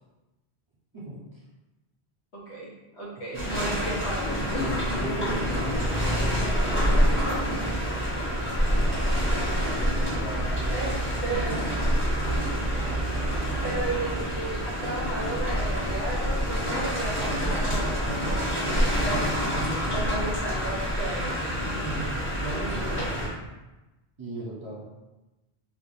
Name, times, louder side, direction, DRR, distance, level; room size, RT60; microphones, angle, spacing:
voice 1, 0.9-1.3 3.3-3.8 4.5-7.0 7.5-7.7 10.0-10.9 21.8-23.3 24.2-24.8, right 1 dB, 30° right, -7 dB, 0.8 m, -37 dB
voice 2, 2.3-2.7 3.0-5.0 5.3-5.4 9.6-10.1 10.4-11.6 13.6-19.4 19.9-21.4, right 2 dB, 90° left, -6 dB, 1.4 m, -34 dB
sound 1, 3.3-23.3, equal, 10° left, 1.0 m, -27 dB
3.4 x 3.1 x 2.6 m, 1.1 s
omnidirectional pair, 1.1 m